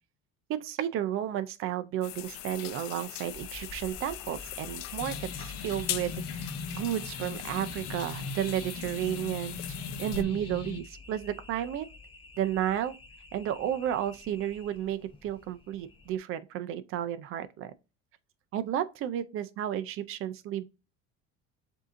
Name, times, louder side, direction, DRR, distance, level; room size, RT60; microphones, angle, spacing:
voice 1, 0.5-11.9 12.4-13.0 13.3-17.7 18.5-20.7, right 11 dB, 40° right, 0.4 m, -32 dB
sound 1, 2.0-10.2, left 13 dB, 80° left, 0.5 m, -41 dB
sound 2, 3.3-16.2, left 3 dB, 15° left, 0.7 m, -50 dB
sound 3, 5.0-10.8, left 4 dB, 50° left, 1.1 m, -39 dB
7.4 x 2.8 x 2.5 m
cardioid pair, 155°, 33 cm